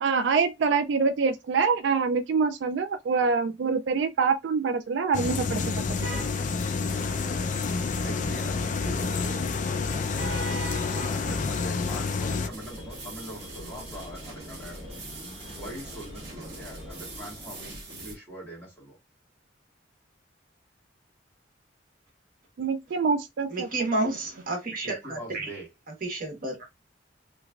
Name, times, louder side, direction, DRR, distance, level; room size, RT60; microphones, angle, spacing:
voice 1, 0.0-5.6 5.9-6.1 22.6-23.9, right 5 dB, 70° right, 0.3 m, -25 dB
sound 1, 5.1-12.5, left 4 dB, 45° left, 0.4 m, -29 dB
sound 2, 6.0-17.7, right 2 dB, 30° left, 1.1 m, -45 dB
voice 2, 8.0-10.1 10.8-14.8 15.5-19.0 24.8-25.7, right 1 dB, 15° left, 1.8 m, -43 dB
sound 3, 12.5-18.1, right 1 dB, 35° right, 1.5 m, -42 dB
voice 3, 23.5-25.5 26.0-26.6, right 2 dB, 50° right, 1.4 m, -30 dB
3.4 x 3.0 x 2.3 m
head